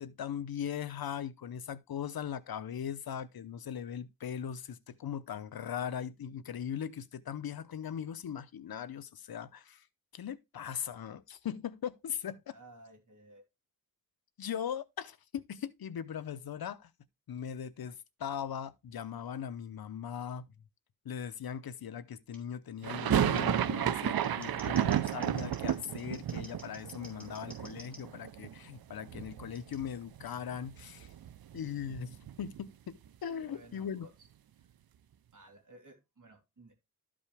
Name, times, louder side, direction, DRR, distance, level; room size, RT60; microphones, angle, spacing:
voice 1, 0.0-9.8 10.1-12.5 14.4-16.9 17.3-20.5 21.0-31.1 31.5-34.1, left 8 dB, 90° left, 0.8 m, -39 dB
voice 2, 12.5-13.4 33.5-34.1 34.6-34.7 35.3-36.7, right 2 dB, 60° right, 3.1 m, -56 dB
Scissors, 22.3-22.4 23.4-23.5 24.1-28.0 29.5-29.8, equal, 5° left, 4.0 m, -53 dB
sound 1, 22.8-28.8 29.0-29.9 30.2-30.3 30.5-32.7, right 10 dB, 85° right, 0.6 m, -32 dB
12.5 x 5.2 x 3.3 m
wide cardioid pair, 120°, 35 cm